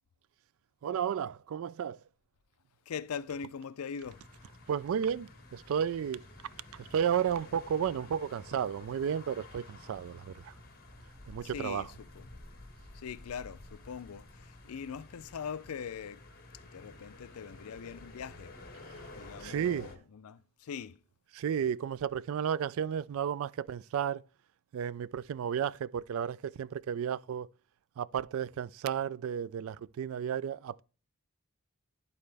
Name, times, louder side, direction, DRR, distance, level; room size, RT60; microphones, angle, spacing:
voice 1, 0.8-2.0 4.7-6.2 6.7-10.5 11.3-11.9 19.4-19.9 21.3-24.2 24.7-27.5 28.0-30.8, right 8 dB, 65° right, 0.3 m, -33 dB
voice 2, 2.9-4.2 11.4-12.3 12.9-16.2 16.6-18.5 19.2-21.0, left 7 dB, 80° left, 0.4 m, -42 dB
sound 1, 4.0-20.0, left 2 dB, 45° left, 1.5 m, -51 dB
12.5 x 4.2 x 3.3 m
head